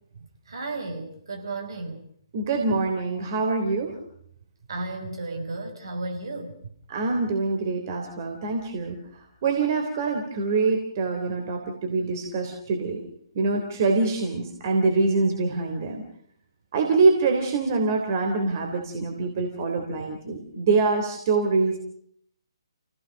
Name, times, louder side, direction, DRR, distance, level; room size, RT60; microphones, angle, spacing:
voice 1, 0.1-2.0 4.7-6.7, right 2 dB, 65° right, 4 dB, 5.2 m, -34 dB
voice 2, 2.3-4.0 6.9-13.0 13.3-16.0 16.7-21.8, right 3 dB, 40° right, 3 dB, 3.3 m, -25 dB
28.5 x 17.0 x 6.5 m, 0.68 s
figure-of-eight pair, 135°, 3 cm